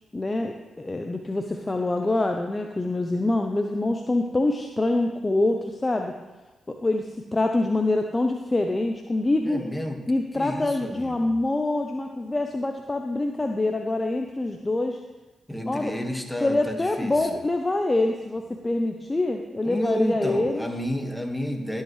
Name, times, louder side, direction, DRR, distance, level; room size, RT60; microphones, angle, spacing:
voice 1, 0.1-6.2 6.7-9.6 10.1-15.0 15.7-15.9 16.4-20.7, left 2 dB, 25° left, 4 dB, 0.7 m, -25 dB
voice 2, 9.4-10.0 10.3-11.3 15.5-17.4 19.6-21.8, equal, 5° left, 3 dB, 1.7 m, -30 dB
11.5 x 8.1 x 3.3 m, 1.1 s
hypercardioid pair, 40°, 0 cm